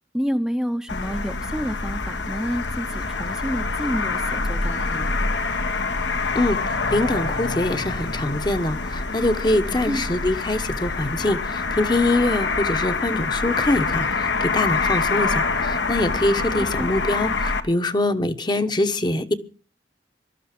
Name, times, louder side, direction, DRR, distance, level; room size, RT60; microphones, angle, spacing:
voice 1, 0.1-5.1 9.9-10.0 16.6-16.9, equal, 5° right, 0.8 m, -29 dB
sound 1, 0.9-17.6, left 3 dB, 80° left, 1.6 m, -26 dB
voice 2, 6.9-19.3, left 2 dB, 25° left, 1.1 m, -23 dB
18.5 x 13.0 x 6.0 m
head